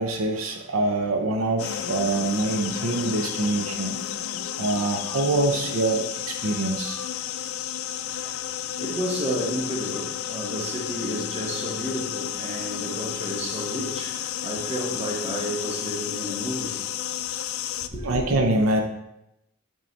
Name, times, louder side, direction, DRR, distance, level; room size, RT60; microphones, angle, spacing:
voice 1, 0.0-4.0 4.6-7.1 18.0-18.8, right 2 dB, 75° right, 0.6 m, -25 dB
sound 1, 1.6-17.9, left 10 dB, 85° left, 0.4 m, -32 dB
voice 2, 8.2-17.2 17.9-18.2, equal, 30° right, 1.1 m, -32 dB
7.6 x 3.8 x 4.0 m
head